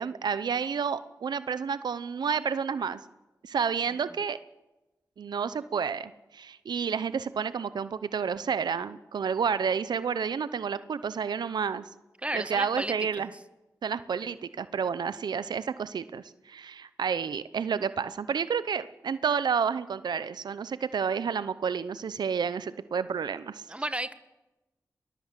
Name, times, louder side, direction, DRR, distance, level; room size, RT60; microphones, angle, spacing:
voice 1, 0.0-3.0 3.4-4.4 5.2-11.9 12.3-13.3 13.8-23.6, right 6 dB, 90° right, 14 dB, 0.7 m, -30 dB
voice 2, 12.2-13.3 23.7-24.1, right 1 dB, 15° right, 11 dB, 1.5 m, -33 dB
21.5 x 21.0 x 7.5 m, 1.1 s
cardioid pair, 50°, 7 cm